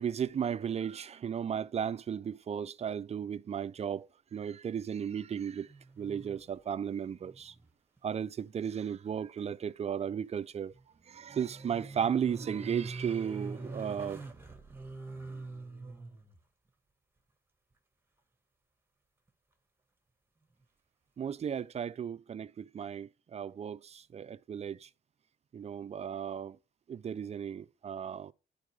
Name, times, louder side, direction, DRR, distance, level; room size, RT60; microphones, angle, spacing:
voice 1, 0.0-4.1 4.3-5.7 6.0-7.5 8.0-10.7 11.1-14.2 21.2-24.9 25.5-26.6 26.9-28.3, right 8 dB, 35° right, 0.4 m, -35 dB
sound 1, 5.6-6.6 6.9-7.7 8.0-8.1 10.6-16.4 19.3-19.4, right 3 dB, 10° right, 1.4 m, -45 dB
10.5 x 4.7 x 3.2 m
cardioid pair, 90°, 20 cm